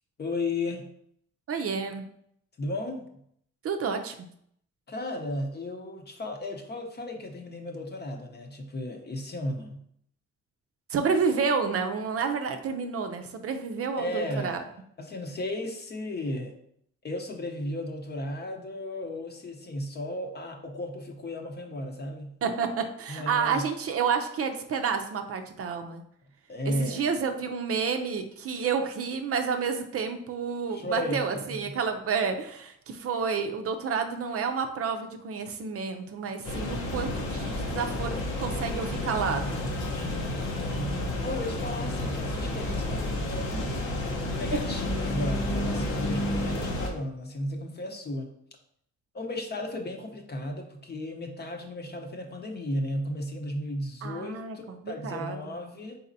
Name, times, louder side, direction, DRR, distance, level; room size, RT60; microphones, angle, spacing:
voice 1, 0.2-0.9 2.6-3.0 4.9-9.8 14.0-14.7 15.0-16.5 17.0-22.4 23.1-23.7 26.5-27.1 30.7-31.6 41.2-43.7 44.3-48.3 49.1-56.0, left 1 dB, 35° left, 3 dB, 0.8 m, -34 dB
voice 2, 1.5-2.0 3.6-4.3 10.9-14.6 22.4-26.0 26.6-39.6 46.4-46.6 54.0-55.4, right 5 dB, 50° right, 5 dB, 0.6 m, -30 dB
sound 1, 36.4-46.9, left 1 dB, 75° left, 1.0 m, -30 dB
4.1 x 4.0 x 2.7 m, 0.69 s
cardioid pair, 90°, 30 cm